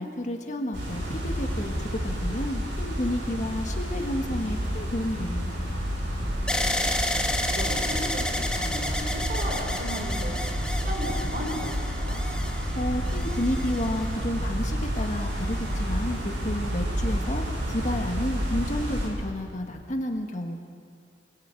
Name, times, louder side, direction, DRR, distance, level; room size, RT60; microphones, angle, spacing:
voice 1, 0.0-5.7 12.7-20.6, left 1 dB, 40° left, 3 dB, 1.6 m, -31 dB
sound 1, 0.7-19.1, equal, 85° right, 7.6 m, -30 dB
sound 2, 6.5-14.5 15.2-15.8, left 1 dB, 5° left, 1.2 m, -32 dB
voice 2, 7.0-12.2, equal, 50° right, -1 dB, 5.1 m, -36 dB
27.0 x 21.0 x 4.7 m, 2.2 s
head